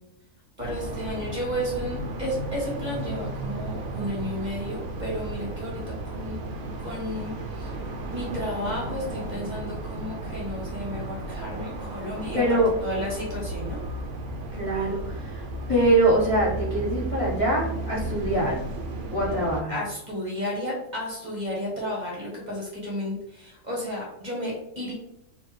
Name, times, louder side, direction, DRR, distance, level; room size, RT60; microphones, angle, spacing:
voice 1, 0.6-5.8 6.0-6.4 6.8-7.7 8.1-12.4 12.8-13.8 19.7-24.9, left 1 dB, 30° right, -4 dB, 1.2 m, -32 dB
sound 1, 0.6-19.6, right 2 dB, 65° right, 0.9 m, -34 dB
voice 2, 12.3-12.7 14.5-18.6 19.1-19.8, right 1 dB, 25° left, -8 dB, 1.0 m, -24 dB
4.4 x 2.8 x 3.2 m, 0.82 s
omnidirectional pair, 1.5 m